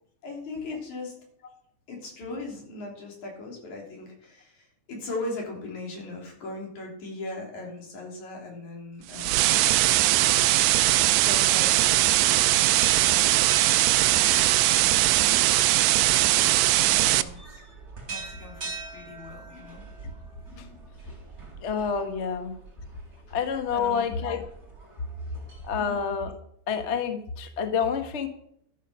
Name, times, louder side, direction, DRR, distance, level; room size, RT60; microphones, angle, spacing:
voice 1, 0.2-1.1 1.9-9.6 11.2-13.5 14.7-15.4 16.0-16.5 16.8-17.6 18.1-19.8 23.3-23.4 23.7-24.2 25.8-26.0, left 2 dB, 80° left, 0 dB, 4.8 m, -39 dB
sound 1, 9.1-17.2, right 16 dB, 80° right, 1.7 m, -21 dB
sound 2, 11.5-25.9, right 3 dB, 30° right, 4.1 m, -43 dB
voice 2, 21.6-22.5 23.3-24.4 25.7-26.3 26.7-28.3, left 6 dB, 50° left, 7 dB, 0.8 m, -28 dB
12.5 x 8.3 x 6.2 m, 0.69 s
omnidirectional pair, 3.3 m